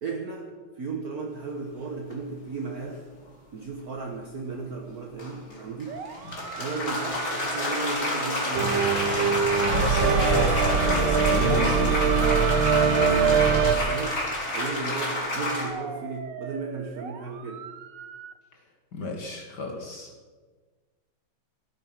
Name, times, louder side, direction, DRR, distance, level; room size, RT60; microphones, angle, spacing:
voice 1, 0.0-3.1 3.5-6.1 6.6-8.8 12.8-14.2 14.5-17.7, right 4 dB, 50° right, 2 dB, 1.6 m, -35 dB
sound 1, 2.1-2.2 5.2-15.7, left 1 dB, 40° left, 3.5 m, -29 dB
sound 2, 5.9-18.3, right 6 dB, 65° right, 1.7 m, -40 dB
sound 3, 8.5-13.8, right 6 dB, 85° right, 1.8 m, -22 dB
voice 2, 9.7-12.2 18.9-20.1, left 2 dB, 55° left, 1 dB, 2.4 m, -30 dB
14.5 x 12.5 x 6.0 m, 1.4 s
omnidirectional pair, 2.2 m